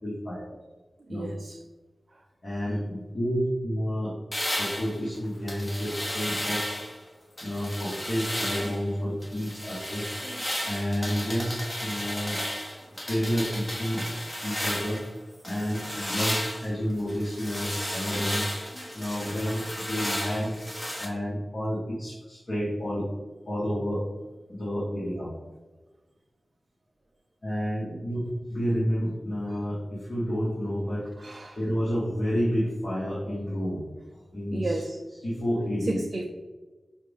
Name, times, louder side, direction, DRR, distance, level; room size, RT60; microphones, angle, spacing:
voice 1, 0.0-0.5 1.1-1.3 2.4-4.1 4.6-6.6 7.4-10.0 10.6-12.4 13.1-13.4 13.8-14.0 14.4-15.0 15.4-18.4 18.9-20.5 21.0-23.1 23.5-24.0 24.5-25.3 27.4-28.2 28.5-31.1 31.5-34.8 35.2-36.0, equal, 50° left, -8 dB, 1.5 m, -30 dB
voice 2, 1.1-1.6 27.9-28.0 31.2-31.6 34.5-35.0 35.9-36.2, right 2 dB, 40° right, 1 dB, 0.4 m, -32 dB
sound 1, 4.3-7.0 7.4-8.8 9.2-15.1 15.4-21.1, equal, 25° left, 1.0 m, -33 dB
5.5 x 2.5 x 3.5 m, 1.2 s
wide cardioid pair, 75°, 0 cm